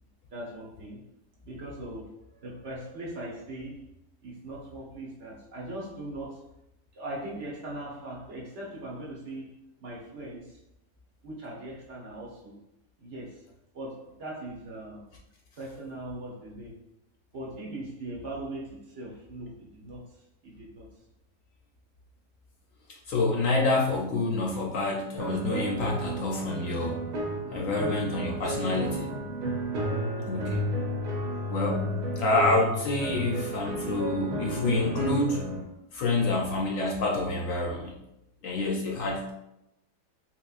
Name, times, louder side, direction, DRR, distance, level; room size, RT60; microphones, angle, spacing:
voice 1, 0.3-1.0 1.4-3.9 4.2-6.5 6.9-10.6 11.2-12.6 13.0-13.5 13.7-15.0 15.6-16.7 17.3-20.9 27.4-28.0 29.7-30.6, right 1 dB, 50° right, -5 dB, 1.1 m, -40 dB
voice 2, 23.1-27.0 27.5-29.1 30.3-30.6 31.5-31.9 32.2-35.5 35.9-38.0 38.4-39.3, left 2 dB, 70° left, 0 dB, 0.8 m, -27 dB
sound 1, 25.2-35.6, right 1 dB, 70° right, 1.3 m, -32 dB
3.7 x 2.9 x 2.4 m, 0.84 s
omnidirectional pair, 1.8 m